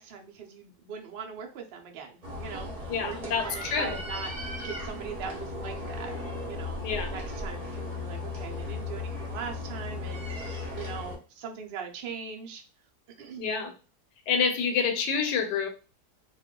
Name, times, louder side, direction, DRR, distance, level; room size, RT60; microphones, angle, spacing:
voice 1, 0.0-6.1 6.5-6.8 7.1-12.6 13.2-13.5, right 6 dB, 70° right, 1 dB, 0.5 m, -41 dB
sound 1, 2.2-11.2, left 2 dB, 30° right, 0.7 m, -36 dB
voice 2, 2.9-4.0 6.8-7.1 13.4-13.7 14.3-15.7, left 6 dB, 85° left, 6 dB, 1.2 m, -28 dB
2.5 x 2.3 x 3.5 m, 0.34 s
omnidirectional pair, 1.7 m